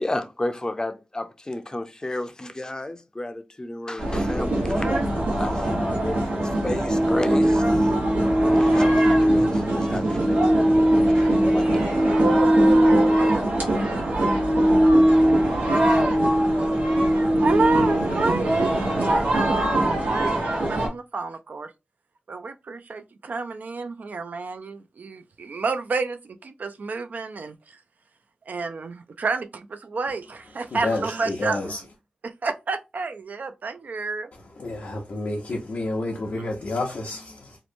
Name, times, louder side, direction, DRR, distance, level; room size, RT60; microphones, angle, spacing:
voice 1, 0.0-4.8 5.4-7.9 8.3-12.0, left 1 dB, 25° left, 0.5 m, -32 dB
sound 1, 4.0-20.9, right 1 dB, 85° right, 0.9 m, -20 dB
voice 2, 17.4-18.5 19.0-21.7 22.3-27.8 28.5-31.9 32.2-34.3 36.4-36.5, right 4 dB, 70° right, 0.3 m, -30 dB
voice 3, 30.7-31.8 34.6-37.6, left 2 dB, 85° left, 0.6 m, -29 dB
2.8 x 2.1 x 2.5 m
wide cardioid pair, 60°, 3 cm